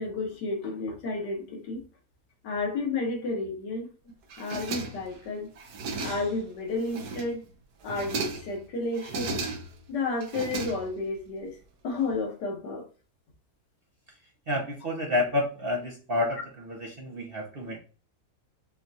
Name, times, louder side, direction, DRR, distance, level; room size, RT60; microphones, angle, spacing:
voice 1, 0.0-1.8 2.4-3.9 4.4-5.5 6.0-7.4 7.8-9.3 9.9-11.6 11.8-12.9, left 3 dB, 85° left, 1.6 m, -31 dB
sound 1, 4.3-5.2 5.6-6.4 6.8-7.4 7.8-8.6 8.9-9.8 10.2-11.2, right 3 dB, 70° right, 1.2 m, -35 dB
voice 2, 14.5-17.8, left 2 dB, 50° right, 0.7 m, -29 dB
6.1 x 2.3 x 2.6 m
omnidirectional pair, 1.8 m